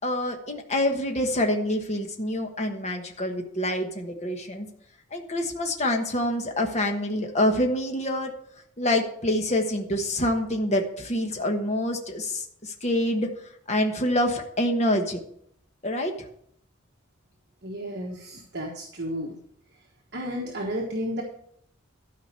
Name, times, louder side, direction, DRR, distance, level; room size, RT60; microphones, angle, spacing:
voice 1, 0.0-4.7 5.1-8.3 8.8-13.3 13.7-15.2 15.8-16.1, left 1 dB, 35° left, 3 dB, 1.2 m, -26 dB
voice 2, 17.6-19.4 20.1-21.2, equal, 50° right, -2 dB, 1.4 m, -32 dB
12.5 x 5.1 x 6.7 m, 0.68 s
head